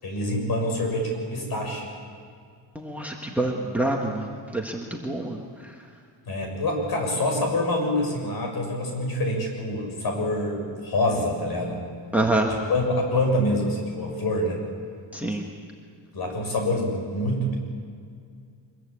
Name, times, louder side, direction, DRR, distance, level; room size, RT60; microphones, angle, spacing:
voice 1, 0.0-1.9 6.3-11.8 12.5-14.6 16.1-17.5, left 1 dB, 50° left, 2 dB, 6.9 m, -26 dB
voice 2, 2.7-4.3 4.5-5.7 12.1-12.5 15.1-15.4, right 2 dB, 5° right, 1 dB, 1.6 m, -26 dB
25.0 x 22.5 x 8.4 m, 2.2 s
cardioid pair, 180°, 47 cm